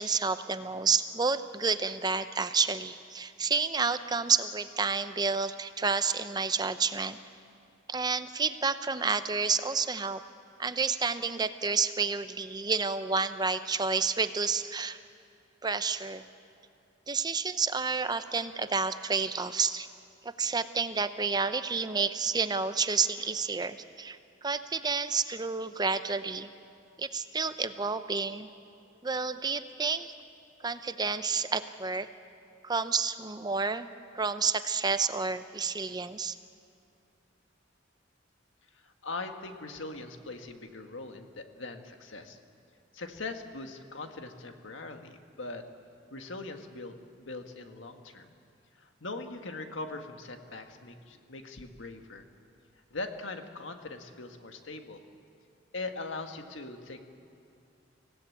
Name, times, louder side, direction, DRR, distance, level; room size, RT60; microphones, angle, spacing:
voice 1, 0.0-7.2 7.9-10.2 10.6-15.0 15.6-16.2 17.1-19.9 20.2-26.5 27.0-28.5 29.0-30.1 30.6-32.1 32.6-33.9 34.1-36.4, right 4 dB, 20° right, 11 dB, 0.6 m, -30 dB
voice 2, 38.8-42.4 42.9-45.6 46.1-48.3 48.8-52.3 52.9-55.0 55.7-57.0, left 3 dB, 80° left, 5 dB, 1.6 m, -41 dB
25.5 x 16.5 x 8.5 m, 2.5 s
head